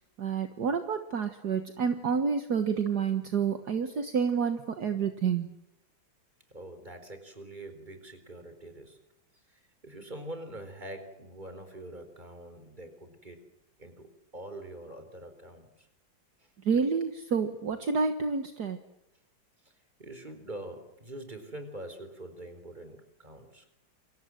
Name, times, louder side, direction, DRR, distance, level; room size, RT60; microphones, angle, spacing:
voice 1, 0.2-5.5 16.6-18.8, right 6 dB, 60° right, 8 dB, 2.0 m, -29 dB
voice 2, 6.5-9.0 9.5-13.4 13.8-15.9 16.4-16.5 20.0-23.6, right 1 dB, 25° right, 8 dB, 4.4 m, -44 dB
29.0 x 24.0 x 7.8 m, 0.85 s
omnidirectional pair, 2.1 m